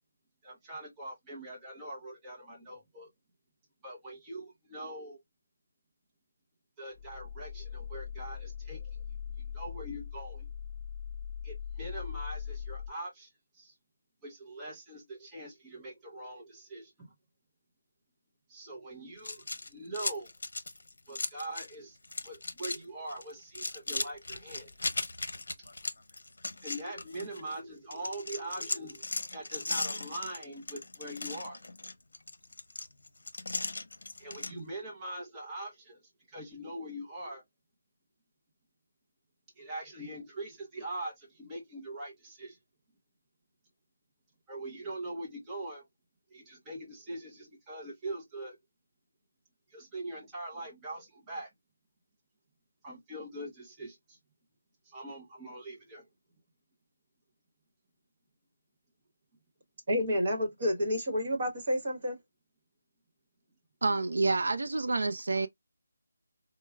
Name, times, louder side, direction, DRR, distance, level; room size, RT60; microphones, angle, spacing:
voice 1, 0.4-3.1 3.8-5.2 6.8-9.0 9.4-10.5 11.4-13.8 14.2-17.1 18.5-20.3 21.1-22.0 22.2-24.7 26.6-29.0 29.3-31.6 34.2-36.0 36.3-37.4 39.6-42.6 44.5-45.8 46.3-48.6 49.7-51.5 52.8-54.2 54.8-56.0, right 1 dB, 10° right, 0.7 m, -42 dB
sound 1, 6.9-12.9, left 7 dB, 30° left, 0.6 m, -40 dB
sound 2, 19.2-21.7 22.0-22.8 23.1-27.5 27.9-34.5, left 3 dB, 70° left, 0.7 m, -37 dB
voice 2, 59.9-62.2, equal, 30° right, 1.1 m, -29 dB
voice 3, 63.8-65.5, right 3 dB, 60° right, 0.4 m, -28 dB
4.6 x 2.0 x 2.2 m
figure-of-eight pair, 175°, 0 cm